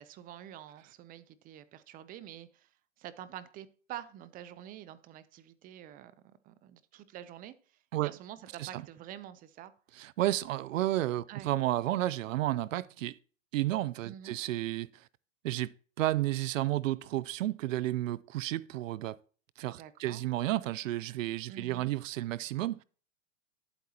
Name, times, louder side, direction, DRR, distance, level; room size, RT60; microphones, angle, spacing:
voice 1, 0.0-2.7 3.0-9.7 11.3-11.5 14.0-14.4 19.7-20.2 21.5-21.9, right 11 dB, 20° right, 0.5 m, -47 dB
voice 2, 10.0-13.2 13.5-15.0 15.4-15.7 16.0-19.2 19.6-22.8, right 15 dB, 80° right, 0.5 m, -32 dB
11.5 x 8.1 x 2.8 m
hypercardioid pair, 130°, 39 cm